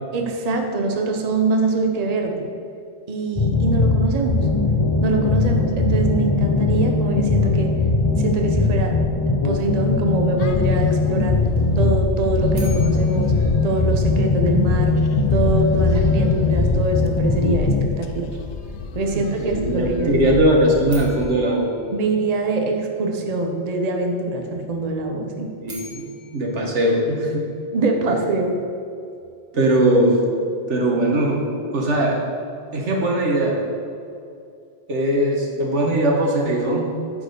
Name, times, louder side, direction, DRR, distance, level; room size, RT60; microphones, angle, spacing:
voice 1, 0.1-2.5 3.1-4.5 5.0-7.7 8.2-11.4 11.8-13.3 13.6-15.0 15.3-18.3 18.9-20.2 21.9-25.5 27.7-28.6, right 2 dB, 40° right, 3 dB, 0.9 m, -24 dB
sound 1, 3.4-17.8, left 3 dB, 30° left, 0.7 m, -19 dB
sound 2, 10.4-21.3, left 5 dB, 75° left, 1.0 m, -35 dB
sound 3, 12.5-14.7 20.8-23.0 25.4-27.8, equal, 60° right, 2.0 m, -45 dB
voice 2, 19.1-21.7 25.6-27.4 29.5-30.2 30.7-31.5 31.7-32.2 32.7-33.6 34.9-36.9, right 1 dB, 90° right, -1 dB, 1.8 m, -20 dB
9.4 x 4.7 x 6.8 m, 2.5 s
omnidirectional pair, 1.2 m